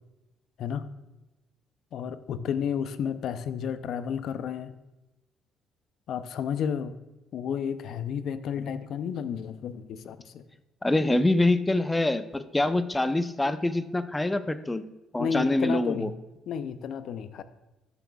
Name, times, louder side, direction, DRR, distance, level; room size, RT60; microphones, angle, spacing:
voice 1, 1.9-4.7 6.1-7.0 7.3-10.4 15.2-16.1 16.5-17.4, left 7 dB, 65° left, 13 dB, 0.5 m, -32 dB
voice 2, 10.8-14.8 15.1-16.1, left 2 dB, 15° left, 12 dB, 0.6 m, -25 dB
13.0 x 6.9 x 2.3 m, 1.0 s
hypercardioid pair, 55°, 0 cm